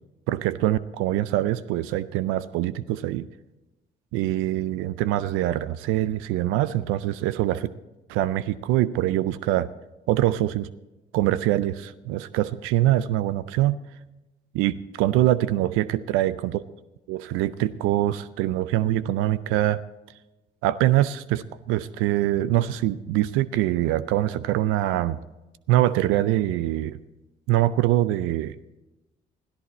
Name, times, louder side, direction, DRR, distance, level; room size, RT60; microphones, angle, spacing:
voice 1, 0.3-3.3 4.1-7.7 8.1-9.7 10.1-10.7 11.1-13.8 14.5-16.6 17.1-19.8 20.6-25.2 25.7-27.0 27.5-28.6, right 14 dB, 85° right, 16 dB, 0.4 m, -24 dB
14.5 x 13.0 x 4.1 m, 1.0 s
hypercardioid pair, 55°, 20 cm